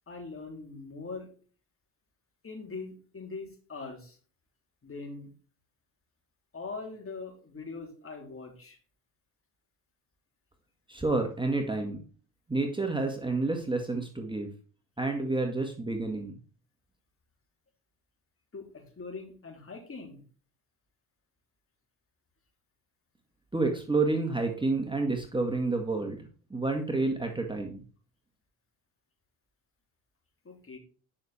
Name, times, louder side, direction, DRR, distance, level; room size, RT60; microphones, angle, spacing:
voice 1, 0.1-1.3 2.4-4.2 4.8-5.3 6.5-8.8 18.5-20.2 30.4-30.8, left 4 dB, 30° left, 2 dB, 3.5 m, -42 dB
voice 2, 10.9-12.0 12.5-14.5 15.0-16.4 23.5-27.8, right 3 dB, 10° right, 3 dB, 1.9 m, -29 dB
9.7 x 6.4 x 4.3 m, 0.40 s
supercardioid pair, 65°, 42 cm